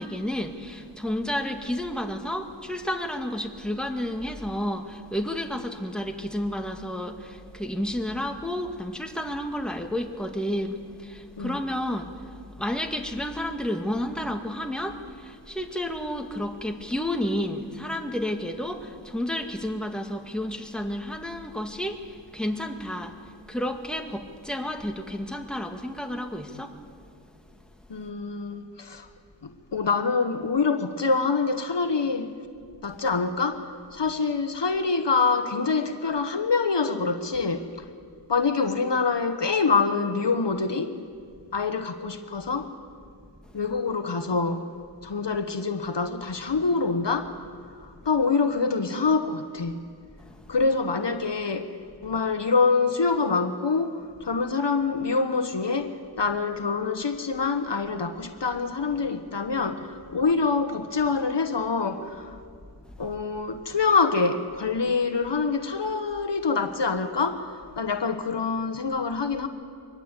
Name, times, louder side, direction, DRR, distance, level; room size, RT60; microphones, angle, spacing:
voice 1, 0.0-26.8 50.2-50.6 62.8-63.0, left 1 dB, ahead, 4 dB, 2.1 m, -31 dB
voice 2, 27.9-29.1 29.4-32.3 32.8-33.6 33.9-37.7 38.3-40.9 41.5-42.7 43.5-44.7 45.0-47.4 47.8-49.8 50.5-51.7 52.0-59.9 60.1-62.4 63.0-69.5, left 4 dB, 70° left, 8 dB, 1.3 m, -25 dB
23.5 x 19.5 x 8.3 m, 2.1 s
wide cardioid pair, 45°, 44 cm